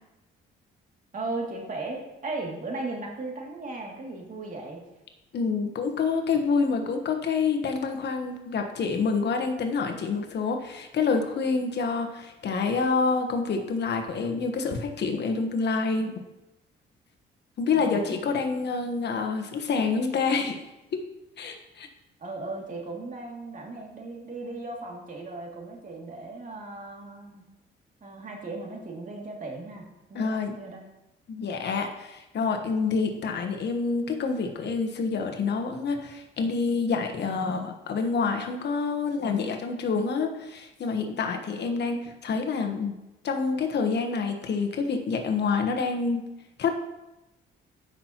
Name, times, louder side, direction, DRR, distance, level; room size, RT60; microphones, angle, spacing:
voice 1, 1.1-4.8 17.7-18.2 22.2-27.4 28.0-30.8, right 2 dB, 40° right, -1 dB, 2.6 m, -37 dB
voice 2, 5.3-16.1 17.6-20.6 20.9-21.0 21.4-21.9 30.1-30.6 31.3-42.9 43.2-46.2 46.6-46.7, left 4 dB, 60° left, 4 dB, 1.2 m, -27 dB
14.5 x 5.9 x 3.0 m, 0.95 s
cardioid pair, 90°, 20 cm